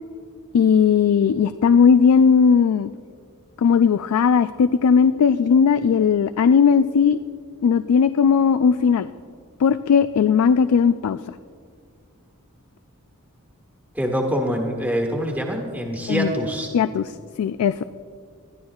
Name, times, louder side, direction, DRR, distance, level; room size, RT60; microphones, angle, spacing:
voice 1, 0.5-2.9 3.6-7.2 7.6-9.1 9.6-11.2 16.1-16.3 16.7-17.1 17.4-17.8, left 6 dB, 85° left, 11 dB, 0.3 m, -17 dB
voice 2, 13.9-16.7, equal, 10° right, 0 dB, 1.5 m, -25 dB
20.5 x 12.5 x 2.4 m, 2.2 s
head